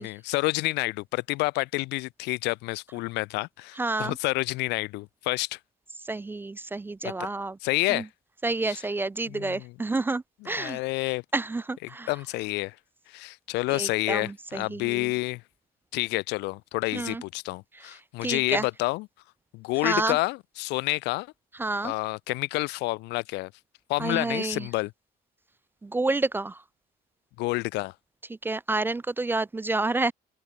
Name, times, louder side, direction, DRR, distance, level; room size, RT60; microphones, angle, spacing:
voice 1, 0.0-5.6 7.2-7.3 7.6-8.1 8.7-8.8 9.3-9.7 10.6-11.2 11.8-12.8 13.1-15.4 15.9-19.1 19.5-21.3 21.8-23.5 23.9-24.9 27.4-27.9, left 22 dB, 90° left, 0.5 m, -29 dB
voice 2, 3.8-4.2 6.0-7.6 7.9-8.0 8.4-10.8 11.3-12.1 13.7-15.1 16.9-17.2 18.2-18.7 19.8-20.2 21.6-21.9 24.0-24.7 25.8-26.6 28.3-30.1, right 2 dB, 10° right, 0.3 m, -29 dB
open air
cardioid pair, 110°, 17 cm